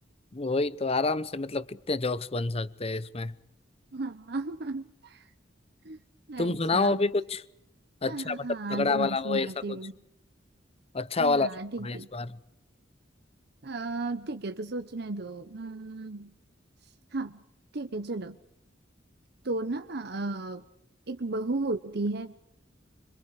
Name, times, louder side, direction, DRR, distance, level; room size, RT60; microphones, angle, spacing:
voice 1, 0.3-3.3 6.4-7.4 8.0-9.8 10.9-11.5 11.8-12.4, left 3 dB, 30° left, 0.8 m, -28 dB
voice 2, 3.9-5.3 5.8-6.0 6.3-7.0 8.0-9.9 11.2-12.1 13.6-16.3 17.1-17.4 17.7-18.4 19.4-20.6 21.1-22.4, right 2 dB, 60° right, 1.0 m, -34 dB
26.5 x 25.5 x 4.9 m
head